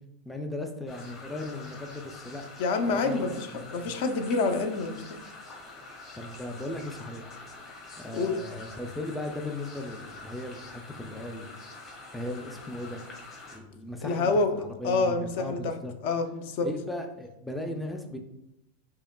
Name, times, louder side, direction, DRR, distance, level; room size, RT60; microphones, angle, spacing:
voice 1, 0.3-2.4 2.9-3.2 3.6-3.9 6.2-7.4 7.9-11.7 12.1-13.0 13.5-15.9 16.6-18.2, left 1 dB, 5° left, 3 dB, 0.4 m, -37 dB
sound 1, 0.9-13.6, left 3 dB, 40° left, 1.4 m, -46 dB
voice 2, 2.6-3.5 3.7-5.0 8.1-8.3 14.0-14.5 14.8-15.7 16.0-16.7, left 3 dB, 60° left, 7 dB, 0.5 m, -27 dB
4.7 x 2.8 x 2.2 m, 0.86 s
supercardioid pair, 140°, 0 cm